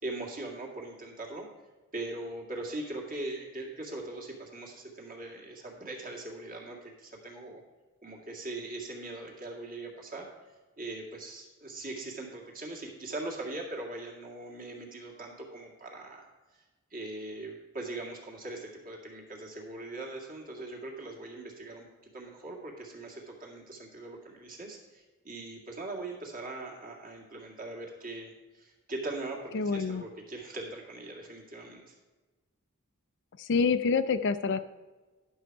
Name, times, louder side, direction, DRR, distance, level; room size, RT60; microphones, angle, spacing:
voice 1, 0.0-1.5 1.9-7.6 8.0-16.3 16.5-16.6 16.9-31.9, right 2 dB, 40° right, 0 dB, 2.0 m, -41 dB
voice 2, 29.5-30.0 33.4-34.6, left 5 dB, 55° left, 11 dB, 0.5 m, -27 dB
11.0 x 6.4 x 4.6 m, 1.3 s
head